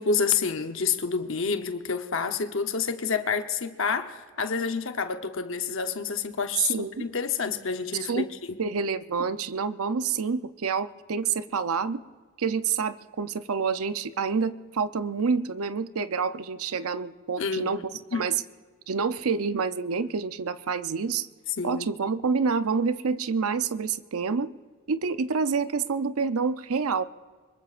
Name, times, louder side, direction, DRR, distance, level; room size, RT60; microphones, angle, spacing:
voice 1, 0.0-8.2 17.4-17.8 18.1-18.3 21.6-21.9, left 5 dB, 60° left, 0.9 m, -28 dB
voice 2, 6.7-7.1 8.1-8.3 8.6-12.0 12.4-17.8 18.1-18.3 18.9-21.3 21.6-24.5 24.9-27.0, right 5 dB, 75° right, 0.6 m, -28 dB
24.5 x 22.0 x 2.5 m
head